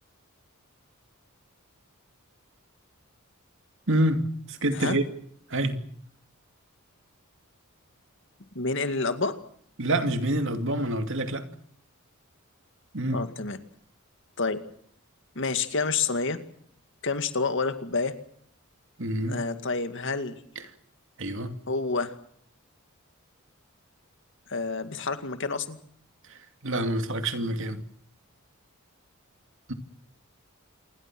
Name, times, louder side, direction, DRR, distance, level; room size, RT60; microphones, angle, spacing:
voice 1, 3.9-5.0 5.5-5.8 9.8-11.5 12.9-13.2 19.0-19.4 21.2-21.6 26.3-27.8 29.7-29.8, right 1 dB, 60° right, 2.6 m, -27 dB
voice 2, 8.5-9.3 13.1-13.6 14.4-14.6 15.4-16.4 17.0-18.1 19.3-20.4 21.7-22.1 24.5-25.8, left 4 dB, 60° left, 2.3 m, -28 dB
28.0 x 22.0 x 6.2 m
head